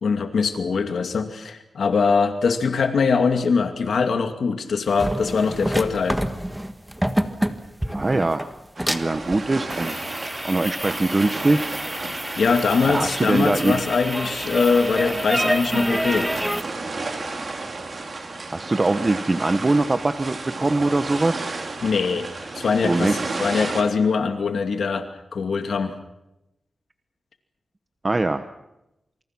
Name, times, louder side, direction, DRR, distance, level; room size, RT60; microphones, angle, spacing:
voice 1, 0.0-6.2 12.4-16.3 21.8-22.3 22.5-25.1 25.3-25.9, left 5 dB, 70° left, 6 dB, 2.5 m, -22 dB
sound 1, 4.9-16.6, equal, 5° right, 1.5 m, -27 dB
voice 2, 7.9-8.5 8.9-11.7 12.8-13.8 18.5-21.5 22.8-23.2 28.0-28.4, right 2 dB, 25° right, 9 dB, 1.1 m, -22 dB
sound 2, 8.7-23.8, right 3 dB, 40° right, 4.1 m, -33 dB
28.0 x 26.5 x 6.1 m, 0.90 s
wide cardioid pair, 170°, 0 cm